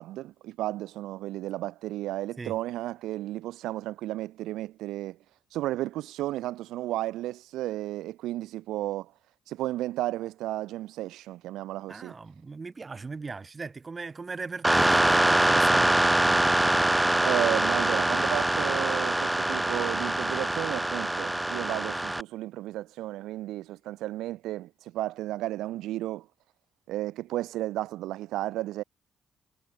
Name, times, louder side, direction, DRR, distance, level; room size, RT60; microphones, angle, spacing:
voice 1, 0.0-5.2 5.5-9.1 9.5-12.1 17.2-26.3 26.9-28.8, right 15 dB, 75° right, 0.4 m, -33 dB
voice 2, 11.9-16.5, right 4 dB, 35° right, 2.5 m, -39 dB
sound 1, 14.6-22.2, right 1 dB, 10° right, 0.7 m, -24 dB
hypercardioid pair, 45°, 0 cm